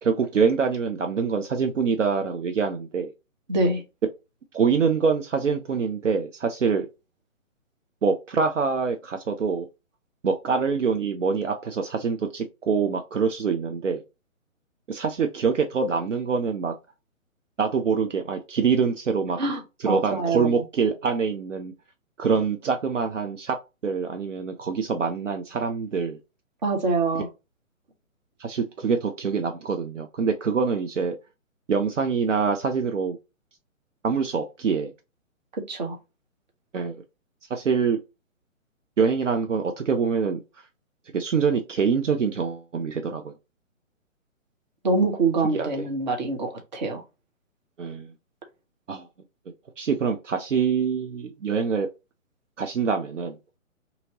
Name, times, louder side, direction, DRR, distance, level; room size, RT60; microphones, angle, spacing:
voice 1, 0.0-3.1 4.5-6.9 8.0-9.7 10.2-14.0 14.9-16.7 17.6-19.4 19.8-21.7 22.2-23.6 23.8-26.2 28.4-31.2 31.7-33.2 34.0-34.9 36.7-37.0 37.5-38.0 39.0-40.4 41.1-43.3 45.5-45.9 47.8-48.1 48.9-49.1 49.8-51.9 52.6-53.4, right 5 dB, 65° right, 0.6 m, -25 dB
voice 2, 3.5-3.8 19.4-19.6 19.9-20.6 26.6-27.3 35.6-36.0 44.8-47.0, right 3 dB, 35° right, 0.7 m, -25 dB
2.8 x 2.7 x 2.7 m
figure-of-eight pair, 130°, 40 cm